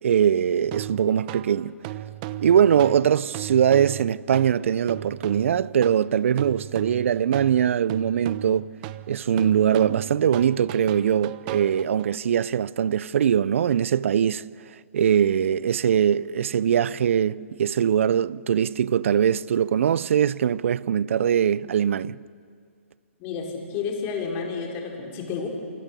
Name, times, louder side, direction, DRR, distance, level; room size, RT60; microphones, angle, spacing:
voice 1, 0.0-1.8 2.4-8.7 9.1-14.5 14.9-22.2, right 9 dB, 65° right, 0.6 m, -22 dB
sound 1, 0.7-12.2, right 15 dB, 35° right, 1.0 m, -36 dB
voice 2, 23.2-25.5, left 5 dB, 30° left, 5.0 m, -31 dB
28.5 x 26.5 x 7.0 m
hypercardioid pair, 135°, 8 cm